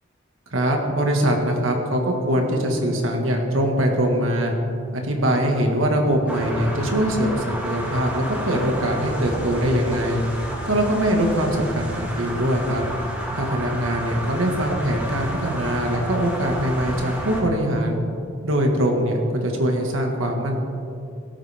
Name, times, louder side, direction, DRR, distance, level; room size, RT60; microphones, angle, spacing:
voice 1, 0.5-4.5 4.9-10.2 10.7-12.8 13.3-18.0 18.4-20.6, right 1 dB, 80° right, 1 dB, 1.9 m, -22 dB
sound 1, 6.3-17.4, equal, 5° right, 2.5 m, -31 dB
16.5 x 13.0 x 3.6 m, 2.7 s
head